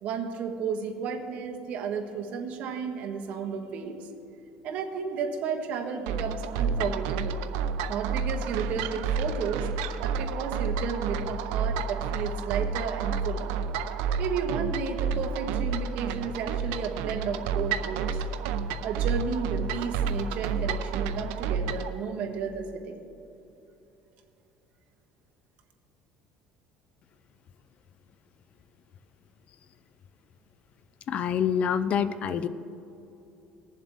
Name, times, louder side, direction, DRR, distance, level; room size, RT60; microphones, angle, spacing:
voice 1, 0.0-4.1 4.6-7.4 7.9-9.7 10.0-13.5 14.2-18.1 18.8-23.0, right 6 dB, 60° right, 3 dB, 1.4 m, -33 dB
sound 1, 6.1-21.9, right 5 dB, 85° right, 0.6 m, -30 dB
voice 2, 31.1-32.5, left 8 dB, 45° left, 14 dB, 0.5 m, -26 dB
19.5 x 7.4 x 3.6 m, 2.9 s
cardioid pair, 120°, 3 cm